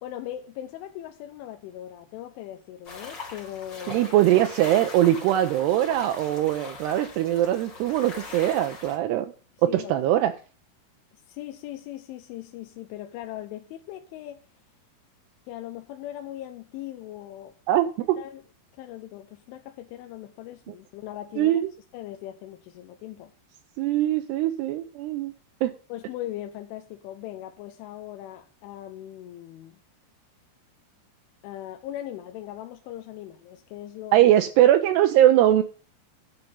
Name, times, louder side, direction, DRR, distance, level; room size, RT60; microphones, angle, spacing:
voice 1, 0.0-4.1 9.7-10.0 11.3-14.4 15.5-17.5 18.2-18.4 18.8-21.6 21.9-23.3 25.9-29.8 31.4-34.3, left 13 dB, 80° left, 3.3 m, -39 dB
sound 1, 2.9-9.0, left 3 dB, 35° left, 2.1 m, -41 dB
voice 2, 3.9-9.3 9.6-10.3 17.7-18.2 21.4-21.7 23.8-25.3 25.6-25.7 34.1-35.6, right 13 dB, 85° right, 2.4 m, -21 dB
11.5 x 5.3 x 8.7 m
omnidirectional pair, 5.6 m